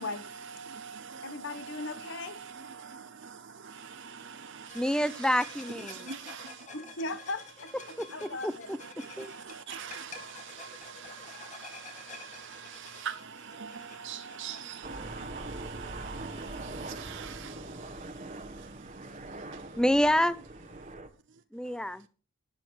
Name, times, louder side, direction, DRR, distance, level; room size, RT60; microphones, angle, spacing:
voice 1, 0.4-5.4 5.8-6.7 7.9-8.4 8.8-19.7 21.6-21.7, right 7 dB, 55° right, 0.8 m, -44 dB
voice 2, 1.2-2.4 6.7-8.7, left 2 dB, 55° left, 1.1 m, -38 dB
sound 1, 4.7-15.0, left 3 dB, 35° left, 2.2 m, -49 dB
voice 3, 4.7-6.1 8.0-8.8 9.2-9.3 19.8-20.4 21.5-22.1, equal, 5° left, 0.5 m, -28 dB
Aircraft, 14.8-21.1, right 2 dB, 30° right, 1.2 m, -42 dB
11.5 x 10.0 x 4.8 m
head